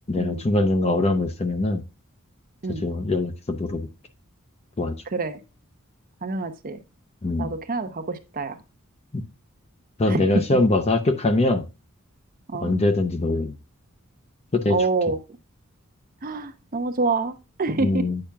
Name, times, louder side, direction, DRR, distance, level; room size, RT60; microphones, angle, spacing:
voice 1, 0.1-1.8 2.8-3.9 4.8-4.9 7.2-7.5 9.1-9.2 10.0-11.6 12.6-13.5 14.5-14.8 17.8-18.2, left 2 dB, 30° left, 9 dB, 0.6 m, -22 dB
voice 2, 6.2-6.8 7.4-8.6 10.1-10.4 12.5-12.7 14.7-15.2 16.2-18.1, right 3 dB, 40° right, 9 dB, 0.7 m, -27 dB
8.7 x 5.6 x 2.3 m, 0.30 s
head